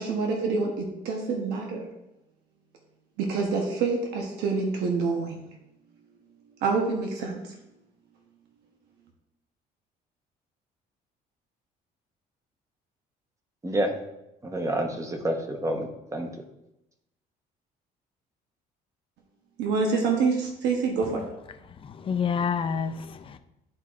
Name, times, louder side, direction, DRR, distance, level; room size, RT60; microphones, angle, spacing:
voice 1, 0.0-1.9 3.2-5.4 6.6-7.4 19.6-21.3, right 4 dB, 85° right, 1 dB, 1.1 m, -26 dB
voice 2, 14.4-16.3, right 1 dB, 20° right, 4 dB, 1.0 m, -28 dB
voice 3, 21.8-23.4, left 6 dB, 30° left, 8 dB, 0.5 m, -28 dB
11.0 x 4.2 x 2.5 m, 0.89 s
cardioid pair, 110°, 17 cm